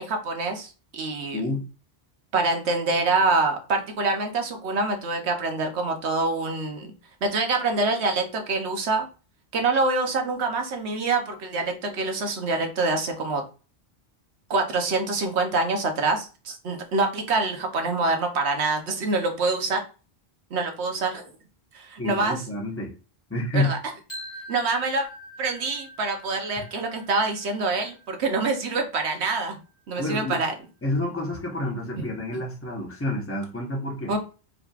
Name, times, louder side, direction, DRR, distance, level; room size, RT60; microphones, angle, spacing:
voice 1, 0.0-1.4 2.3-6.9 7.2-9.1 9.5-13.4 14.5-19.8 20.5-21.2 21.7-22.4 23.5-23.8 24.5-25.1 25.4-29.6 29.9-30.5 32.0-32.1 34.1-34.2, right 3 dB, 85° right, 1.1 m, -25 dB
voice 2, 22.0-22.9 23.3-23.7 30.0-30.4 30.8-34.2, left 1 dB, 15° left, 0.9 m, -28 dB
sound 1, 24.1-30.0, equal, 40° left, 2.3 m, -45 dB
5.0 x 3.1 x 2.4 m
omnidirectional pair, 1.1 m